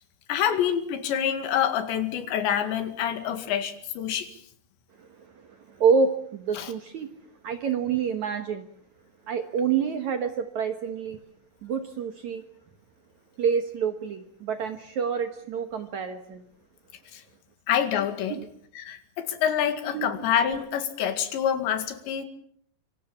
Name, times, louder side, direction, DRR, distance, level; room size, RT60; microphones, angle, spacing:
voice 1, 0.3-4.3 6.6-6.7 17.1-17.2 17.7-18.4 18.8-22.3, left 9 dB, 85° left, 4.3 m, -26 dB
voice 2, 5.4-7.1 7.4-8.7 9.3-11.2 11.6-12.4 13.4-16.4 18.3-18.5 19.9-20.2, right 6 dB, 65° right, 2.0 m, -27 dB
27.0 x 25.0 x 7.1 m
omnidirectional pair, 5.0 m